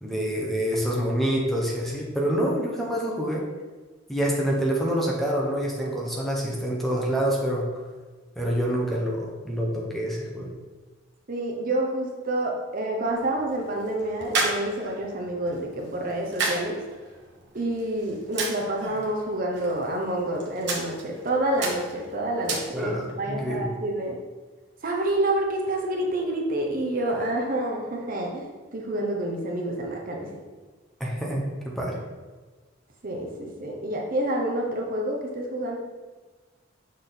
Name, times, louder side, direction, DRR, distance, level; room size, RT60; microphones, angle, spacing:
voice 1, 0.0-3.4 4.1-7.7 8.4-10.5 22.7-23.7 31.0-32.0, equal, ahead, -3 dB, 1.0 m, -27 dB
voice 2, 11.3-16.8 17.5-24.1 24.8-30.3 33.0-35.8, right 1 dB, 45° right, 0 dB, 0.8 m, -28 dB
sound 1, 13.1-23.1, right 3 dB, 65° right, 1.2 m, -34 dB
6.4 x 3.7 x 4.0 m, 1.3 s
head